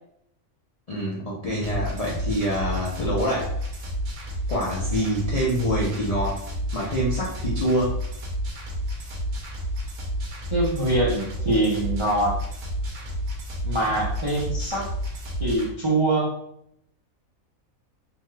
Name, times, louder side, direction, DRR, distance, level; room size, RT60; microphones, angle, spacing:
voice 1, 0.9-3.5 4.5-6.4 6.7-7.9, equal, 50° left, -7 dB, 0.4 m, -26 dB
sound 1, 1.6-15.7, equal, 65° right, 0.9 m, -31 dB
voice 2, 4.9-5.3 10.5-12.4 13.6-14.8 15.4-16.3, right 1 dB, 40° right, -6 dB, 0.4 m, -24 dB
2.8 x 2.3 x 3.1 m, 0.73 s
omnidirectional pair, 1.4 m